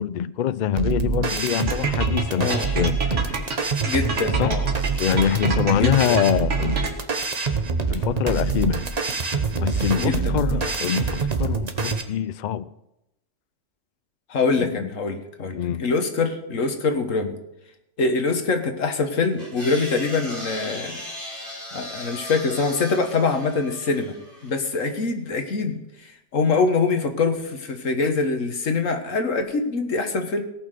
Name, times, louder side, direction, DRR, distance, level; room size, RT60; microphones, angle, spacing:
voice 1, 0.0-3.4 4.4-6.9 7.9-8.8 9.3-12.7 14.6-14.9 15.5-15.8, left 9 dB, 65° left, 17 dB, 0.4 m, -25 dB
sound 1, 0.8-12.0, right 5 dB, 35° right, 1.1 m, -25 dB
sound 2, 1.7-7.2, right 4 dB, 70° right, 2.0 m, -29 dB
voice 2, 2.3-2.7 3.8-4.6 5.7-6.2 9.9-10.7 14.3-17.3 18.0-21.0 21.7-24.2 24.4-30.4, left 4 dB, 85° left, 7 dB, 1.8 m, -24 dB
sound 3, 19.4-24.7, equal, 40° left, 6.5 m, -37 dB
17.5 x 5.9 x 6.6 m, 0.89 s
omnidirectional pair, 1.3 m